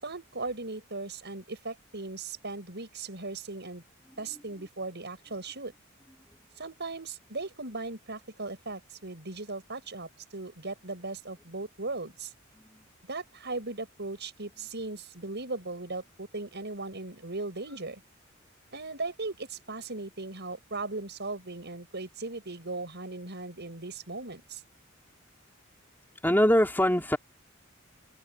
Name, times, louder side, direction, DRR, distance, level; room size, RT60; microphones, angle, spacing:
voice 1, 0.0-3.8 4.2-5.7 6.6-12.3 13.1-18.0 18.7-24.6, right 3 dB, 55° right, 7.3 m, -38 dB
voice 2, 26.2-27.2, equal, 10° left, 3.6 m, -23 dB
open air
head